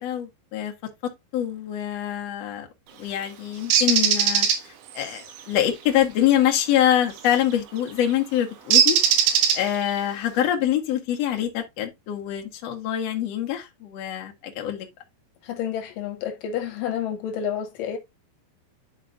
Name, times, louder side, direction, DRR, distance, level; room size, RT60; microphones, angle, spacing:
voice 1, 0.0-0.7 1.3-2.7 3.0-14.9, left 11 dB, 85° left, 1.4 m, -25 dB
Bird, 3.7-4.6 7.2-7.4 8.7-9.9, right 8 dB, 80° right, 3.6 m, -19 dB
voice 2, 15.4-18.0, left 9 dB, 70° left, 2.2 m, -29 dB
12.0 x 4.5 x 2.4 m
omnidirectional pair, 5.2 m